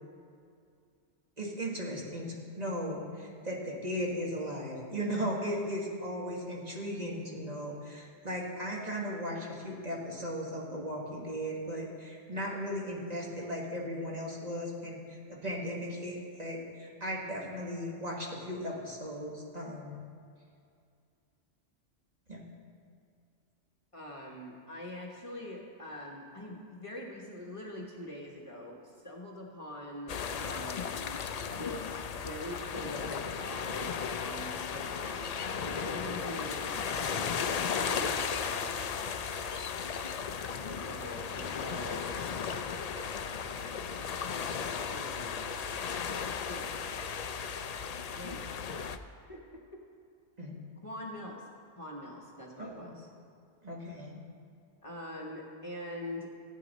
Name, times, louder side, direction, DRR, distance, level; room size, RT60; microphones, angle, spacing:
voice 1, 1.4-20.0 22.3-22.4 50.4-50.5 52.6-52.9 53.6-54.2, equal, 35° right, -3 dB, 1.7 m, -37 dB
voice 2, 23.9-30.9 31.5-35.2 35.6-39.0 40.6-42.5 43.9-45.5 46.3-46.8 48.2-48.5 49.3-49.8 50.8-51.5 51.8-53.1 54.8-56.3, left 1 dB, 30° left, -2 dB, 1.2 m, -44 dB
sound 1, 30.1-49.0, left 6 dB, 65° left, 0.3 m, -35 dB
16.0 x 8.9 x 4.1 m, 2.4 s
omnidirectional pair, 1.2 m